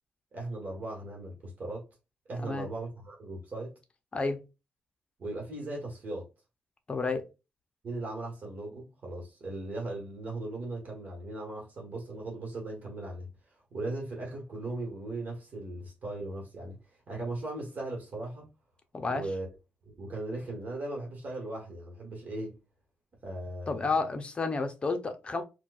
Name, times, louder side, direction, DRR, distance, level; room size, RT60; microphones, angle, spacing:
voice 1, 0.3-1.8 2.3-3.7 5.2-6.3 7.8-13.3 13.7-16.8 17.1-18.5 19.1-19.5 19.9-22.5 23.2-23.9, right 2 dB, 50° right, 1.3 m, -38 dB
voice 2, 4.1-4.4 6.9-7.2 18.9-19.3 23.7-25.4, left 3 dB, 30° left, 0.6 m, -31 dB
4.3 x 2.3 x 2.3 m
cardioid pair, 115°, 3 cm